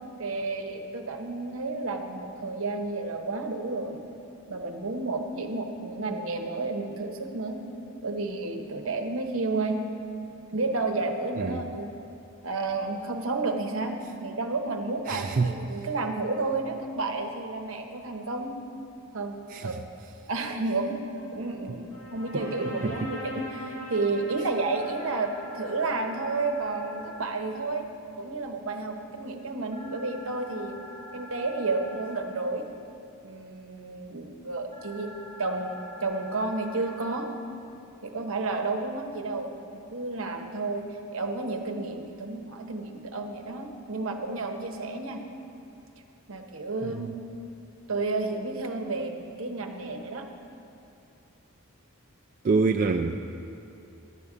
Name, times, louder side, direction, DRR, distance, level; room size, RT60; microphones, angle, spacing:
voice 1, 0.2-4.0 4.5-7.7 8.0-9.8 10.5-11.9 12.4-18.6 19.1-19.7 20.3-21.0 21.3-27.9 28.2-30.8 31.1-32.7 33.2-35.1 35.4-37.3 38.0-45.2 46.3-47.1 47.9-50.3, right 3 dB, 70° right, 4 dB, 0.9 m, -31 dB
voice 2, 15.1-15.5 19.5-19.8 22.8-23.0 46.8-47.1 52.4-53.2, right 4 dB, 40° right, 3 dB, 0.3 m, -26 dB
sound 1, 21.2-27.1, left 1 dB, 80° left, 1.7 m, -44 dB
sound 2, 24.7-27.2 29.7-32.2 34.7-37.2, left 2 dB, 15° left, 2.1 m, -45 dB
11.0 x 5.2 x 8.3 m, 2.8 s
head